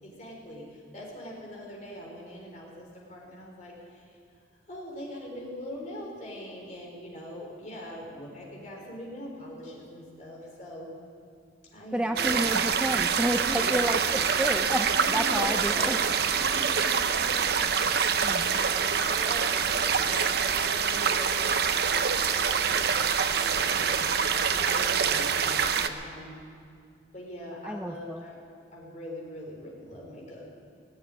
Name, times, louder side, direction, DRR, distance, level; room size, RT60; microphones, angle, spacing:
voice 1, 0.0-4.2 4.7-10.9 11.7-12.4 13.5-14.1 15.0-16.0 16.3-17.7 18.8-21.5 21.8-26.4 27.1-28.4 28.7-30.4, left 1 dB, 40° left, -2 dB, 3.9 m, -42 dB
voice 2, 11.9-16.0 18.2-18.7 27.6-28.2, right 1 dB, 5° right, 6 dB, 0.4 m, -30 dB
sound 1, 12.2-25.9, right 6 dB, 60° right, 0.7 m, -25 dB
19.5 x 7.3 x 9.6 m, 2.4 s
head